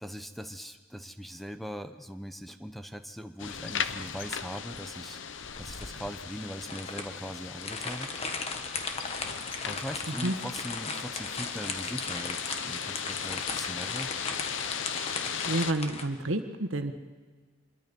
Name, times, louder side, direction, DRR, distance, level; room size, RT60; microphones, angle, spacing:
voice 1, 0.0-5.2 5.6-8.1 9.6-14.1, equal, ahead, 9 dB, 0.8 m, -40 dB
sound 1, 3.4-15.7, left 7 dB, 65° left, 0.9 m, -37 dB
sound 2, 5.4-16.0, left 4 dB, 30° left, 1.6 m, -37 dB
voice 2, 15.4-16.9, right 1 dB, 85° right, 8 dB, 1.5 m, -29 dB
26.0 x 22.5 x 5.4 m, 1.4 s
head